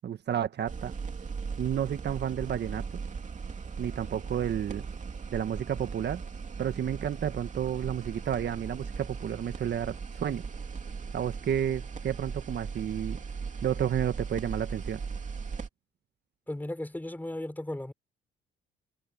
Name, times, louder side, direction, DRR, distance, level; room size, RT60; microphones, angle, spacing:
voice 1, 0.0-0.9 1.6-3.0 3.8-4.9 5.3-6.2 6.6-10.5 11.1-13.2 13.6-15.0, right 9 dB, 60° right, 1.4 m, -31 dB
sound 1, 0.7-15.7, right 5 dB, 40° right, 2.9 m, -38 dB
voice 2, 16.5-17.9, left 1 dB, 10° left, 4.9 m, -36 dB
cardioid pair, 90°, 20 cm